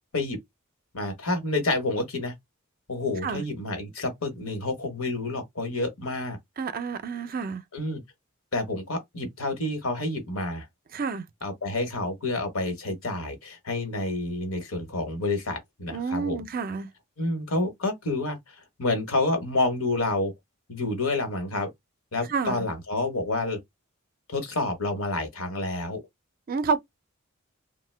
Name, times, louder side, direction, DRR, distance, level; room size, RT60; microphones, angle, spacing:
voice 1, 0.9-2.3 2.9-6.4 7.7-8.0 8.5-10.7 11.4-16.4 17.2-20.3 20.7-21.7 22.1-23.6 24.3-26.0, left 2 dB, 75° left, 1.1 m, -29 dB
voice 2, 6.6-7.6 10.9-11.2 15.9-16.9 22.3-22.6 26.5-26.8, right 5 dB, 45° right, 0.5 m, -29 dB
2.8 x 2.1 x 3.2 m
head